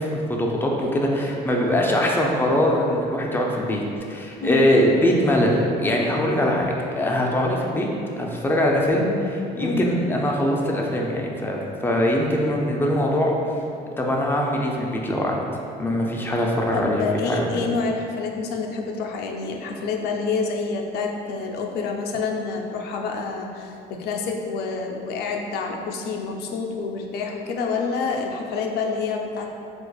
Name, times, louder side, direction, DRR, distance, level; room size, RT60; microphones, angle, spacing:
voice 1, 0.0-3.8 4.1-7.9 8.2-13.3 14.0-15.4 15.8-17.4, left 1 dB, 10° left, -1 dB, 0.4 m, -22 dB
voice 2, 16.7-29.5, left 4 dB, 75° left, 1 dB, 0.4 m, -28 dB
4.5 x 2.4 x 2.3 m, 2.6 s
cardioid pair, 110°, 17 cm